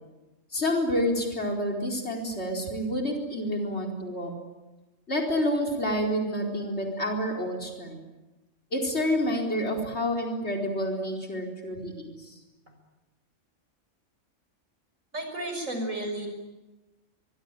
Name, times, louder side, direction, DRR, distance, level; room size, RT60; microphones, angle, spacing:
voice 1, 0.5-4.3 5.1-8.0 8.7-12.1, equal, 55° left, 1 dB, 4.8 m, -28 dB
voice 2, 15.1-16.3, right 1 dB, 80° right, 5 dB, 6.4 m, -32 dB
24.5 x 23.0 x 9.2 m, 1.1 s
omnidirectional pair, 1.3 m